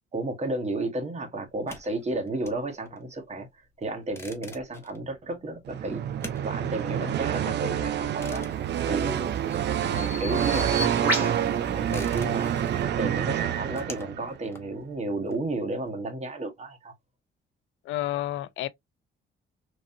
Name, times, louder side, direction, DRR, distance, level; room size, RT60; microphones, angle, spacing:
voice 1, 0.1-6.0 6.4-9.3 9.8-16.9, right 2 dB, 35° right, 1.2 m, -33 dB
sound 1, 1.5-9.8 10.1-15.9, left 2 dB, 10° left, 0.9 m, -48 dB
sound 2, 5.7-14.3, right 10 dB, 60° right, 0.5 m, -27 dB
Bird vocalization bird call bird song, 8.6-12.8, equal, 10° right, 1.9 m, -35 dB
voice 2, 17.8-18.7, left 14 dB, 80° left, 0.4 m, -30 dB
3.2 x 2.7 x 2.5 m
cardioid pair, 90°, 20 cm